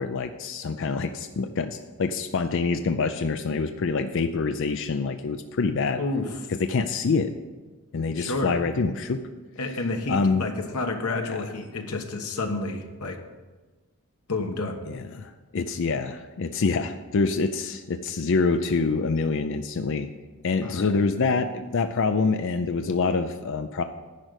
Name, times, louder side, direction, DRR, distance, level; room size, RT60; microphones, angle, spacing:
voice 1, 0.0-6.0 6.6-7.3 7.9-9.2 10.1-10.4 11.2-11.5 14.9-20.1 20.4-23.8, left 4 dB, 55° left, 8 dB, 0.4 m, -26 dB
voice 2, 6.0-6.3 8.2-8.5 9.6-13.2 14.3-14.8 20.6-21.0, left 2 dB, 85° left, 5 dB, 1.2 m, -30 dB
10.5 x 5.1 x 8.0 m, 1.3 s
head